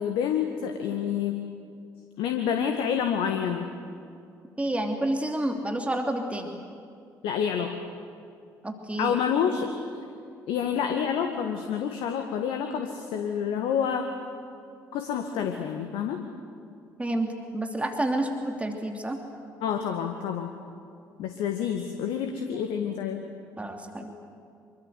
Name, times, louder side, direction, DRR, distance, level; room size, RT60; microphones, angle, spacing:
voice 1, 0.0-1.4 2.2-3.7 7.2-7.8 9.0-9.7 10.5-14.1 14.9-16.2 19.6-20.5 21.2-23.2, left 8 dB, 65° left, 5 dB, 1.7 m, -28 dB
voice 2, 4.6-6.6 8.6-9.1 17.0-17.3 17.5-19.2 23.6-24.2, right 1 dB, 15° right, 3 dB, 2.8 m, -29 dB
26.5 x 24.5 x 8.0 m, 2.4 s
figure-of-eight pair, 45°, 10 cm